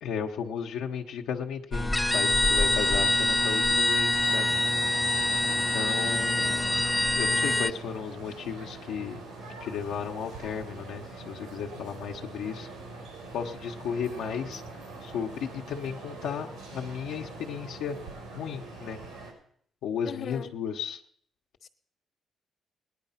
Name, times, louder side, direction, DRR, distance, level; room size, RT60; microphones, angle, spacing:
voice 1, 0.0-4.6 5.4-6.8 7.2-9.2 9.6-12.7 13.3-14.6 15.0-18.0 18.3-19.0 19.8-21.0, left 7 dB, 85° left, 1.1 m, -34 dB
sound 1, 1.7-7.7, left 1 dB, 10° left, 0.5 m, -25 dB
sound 2, 4.2-19.3, right 3 dB, 90° right, 5.9 m, -43 dB
voice 2, 20.1-20.5 21.6-21.7, left 8 dB, 55° left, 1.2 m, -38 dB
18.0 x 10.5 x 5.8 m
cardioid pair, 90°, 0 cm